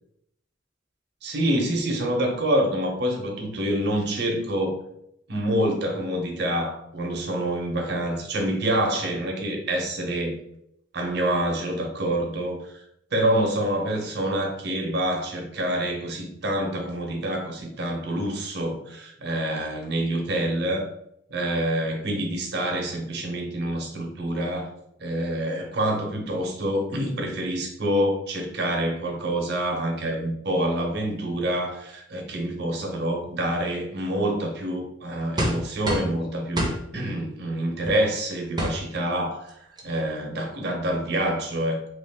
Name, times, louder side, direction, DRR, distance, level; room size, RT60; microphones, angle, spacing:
voice 1, 1.2-4.8 5.3-10.4 10.9-12.8 13.1-20.9 21.3-24.7 25.0-39.6 39.8-41.9, right 1 dB, 60° right, 1 dB, 0.8 m, -27 dB
sound 1, 35.4-36.2 36.6-36.8 37.8-38.0 38.6-38.8 39.5-39.6 39.8-40.1, equal, 25° right, 0.6 m, -26 dB
3.1 x 2.5 x 3.5 m, 0.75 s
head